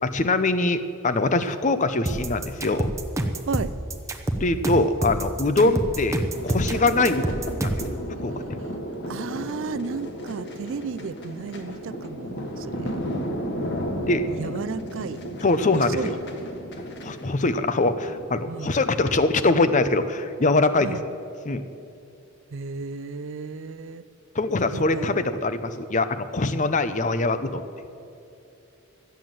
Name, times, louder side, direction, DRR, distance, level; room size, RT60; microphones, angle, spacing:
voice 1, 0.0-2.9 4.4-7.7 8.2-8.6 14.1-14.3 15.4-16.1 17.0-21.0 21.5-21.6 24.3-27.6, left 2 dB, 35° left, 11 dB, 0.6 m, -23 dB
sound 1, 2.1-7.9, right 1 dB, 15° right, 0.8 m, -27 dB
sound 2, 6.3-18.2, equal, 50° left, 1.5 m, -33 dB
voice 2, 9.1-13.0 14.3-15.2 15.7-16.2 18.5-18.7 20.8-21.0 22.5-24.0 24.7-25.1, right 5 dB, 60° right, 15 dB, 0.4 m, -33 dB
13.5 x 9.2 x 7.7 m, 2.7 s
head